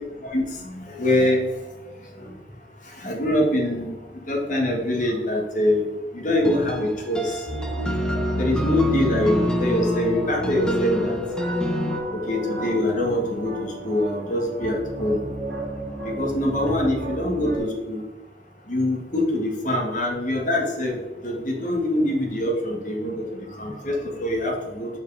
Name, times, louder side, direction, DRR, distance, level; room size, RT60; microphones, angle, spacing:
voice 1, 0.9-1.4 3.0-3.9 4.3-5.8 6.1-7.2 8.3-11.1 12.1-15.2 16.2-18.0 18.7-21.0 21.2-23.3 23.6-23.9 24.2-24.9, left 1 dB, 45° left, -1 dB, 1.6 m, -24 dB
sound 1, 6.4-12.0, left 1 dB, 5° left, 0.8 m, -28 dB
sound 2, 7.5-17.6, right 1 dB, 70° right, 2.3 m, -32 dB
7.0 x 6.2 x 3.4 m, 1.2 s
head